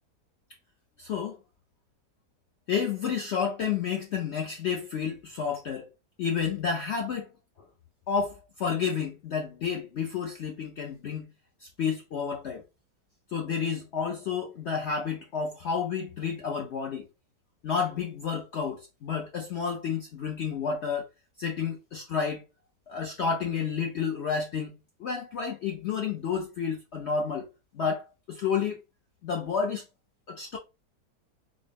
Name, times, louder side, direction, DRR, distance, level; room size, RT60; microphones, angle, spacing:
voice 1, 1.0-1.4 2.7-5.9 6.2-7.3 8.1-11.3 11.6-12.6 13.3-17.0 17.6-21.1 21.4-22.4 22.9-24.7 25.0-28.8 29.2-29.8 30.3-30.6, left 6 dB, 80° left, 0.6 m, -30 dB
4.0 x 2.1 x 3.4 m
omnidirectional pair, 1.9 m